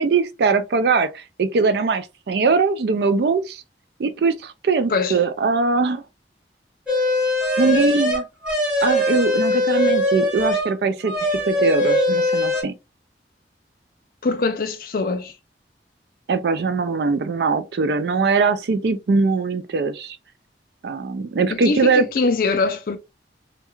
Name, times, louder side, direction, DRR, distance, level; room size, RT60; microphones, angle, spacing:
voice 1, 0.0-3.6 4.0-6.0 7.6-8.3 8.8-12.7 16.3-20.2 20.8-22.0, right 4 dB, 70° right, 0.4 m, -21 dB
sound 1, 6.9-10.7 11.0-12.6, left 1 dB, 5° right, 1.1 m, -21 dB
voice 2, 14.2-15.3 21.5-23.0, left 3 dB, 50° left, 0.4 m, -22 dB
2.3 x 2.2 x 2.9 m
head